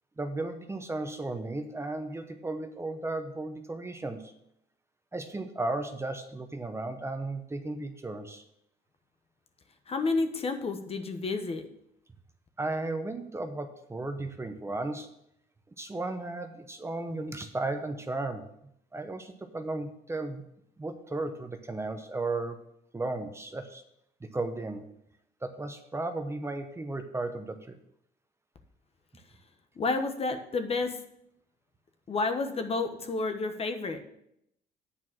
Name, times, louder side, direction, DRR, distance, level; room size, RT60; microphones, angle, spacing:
voice 1, 0.2-4.3 5.1-8.4 12.6-15.1 15.8-18.4 18.9-20.4 20.8-22.6 22.9-23.8 24.2-24.9 25.4-27.7, right 2 dB, 15° right, 6 dB, 0.8 m, -35 dB
voice 2, 9.9-11.7 29.8-31.0 32.1-34.0, left 3 dB, 35° left, 7 dB, 1.1 m, -30 dB
8.5 x 4.7 x 7.3 m, 0.76 s
cardioid pair, 110°, 17 cm